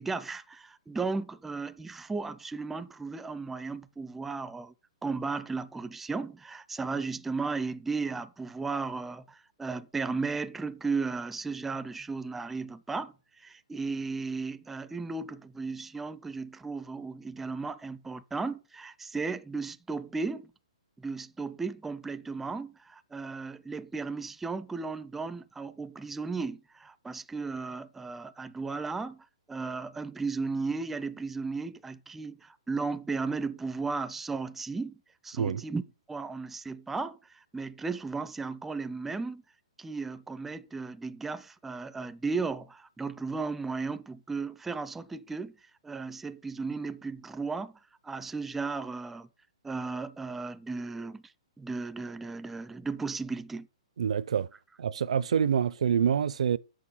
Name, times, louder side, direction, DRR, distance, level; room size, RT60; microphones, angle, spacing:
voice 1, 0.0-4.7 5.0-20.5 21.0-35.8 36.1-39.4 39.8-45.6 45.8-49.3 49.6-51.2 51.6-53.7, right 4 dB, 5° right, 0.4 m, -35 dB
voice 2, 54.0-54.5 54.8-56.6, right 8 dB, 75° right, 0.5 m, -26 dB
8.5 x 6.5 x 5.7 m
hypercardioid pair, 155°, 3 cm